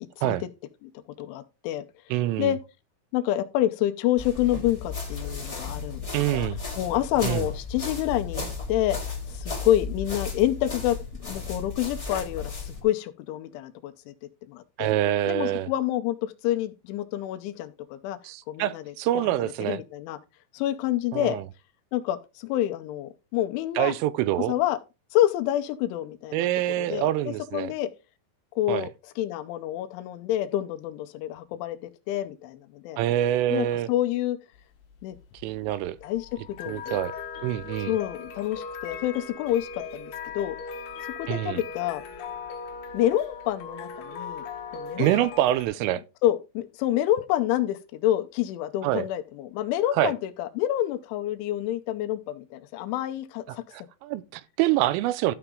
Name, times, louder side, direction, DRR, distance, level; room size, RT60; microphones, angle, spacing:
voice 1, 1.2-1.8 2.4-2.6 3.1-6.1 6.3-6.5 6.8-8.4 8.7-9.0 9.3-11.0 11.2-14.1 14.5-14.9 15.3-18.2 18.5-18.8 19.1-19.3 19.6-20.2 20.5-21.4 21.9-23.9 24.5-24.8 25.1-26.5 26.8-27.9 28.6-28.9 29.2-33.0 33.5-34.4 35.0-35.2 36.0-37.0 37.9-40.6 41.2-42.0 42.9-44.4 44.7-45.3 46.2-53.6, left 13 dB, 80° left, 3.1 m, -28 dB
voice 2, 2.1-2.5 6.1-6.6 7.2-7.5 14.8-15.7 18.2-19.8 21.1-21.4 23.8-24.5 26.3-27.7 28.7-28.9 33.0-33.9 35.4-36.0 36.7-37.1 37.4-38.0 41.3-41.6 45.0-46.0 48.8-49.1 49.9-50.1 53.7-55.4, right 14 dB, 85° right, 3.2 m, -26 dB
sound 1, 4.2-12.8, left 4 dB, 15° left, 1.0 m, -34 dB
sound 2, 34.6-45.7, left 5 dB, 65° left, 3.2 m, -39 dB
13.0 x 5.9 x 3.7 m
omnidirectional pair, 5.7 m